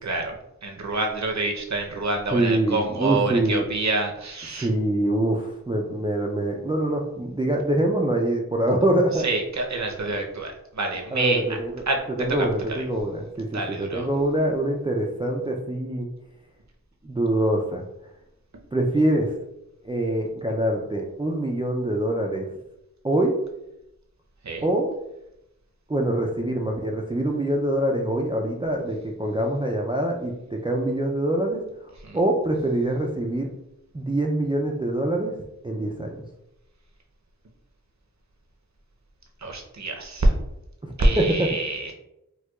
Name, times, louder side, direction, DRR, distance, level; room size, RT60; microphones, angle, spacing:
voice 1, 0.0-0.4 0.6-4.7 9.1-11.4 11.9-12.0 12.4-12.8 13.5-14.1 24.4-24.7 32.0-32.2 39.4-40.3 41.0-41.9, right 2 dB, 55° right, 2 dB, 0.7 m, -26 dB
voice 2, 2.3-3.7 4.6-9.3 11.1-11.8 12.2-16.1 17.0-17.8 18.7-19.3 19.8-22.5 23.0-23.3 24.6-24.9 25.9-31.6 32.1-33.5 33.9-35.4 35.6-36.2 40.8-41.5, right 1 dB, 15° right, 0 dB, 0.3 m, -24 dB
4.4 x 2.2 x 2.3 m, 0.85 s
wide cardioid pair, 45°, 34 cm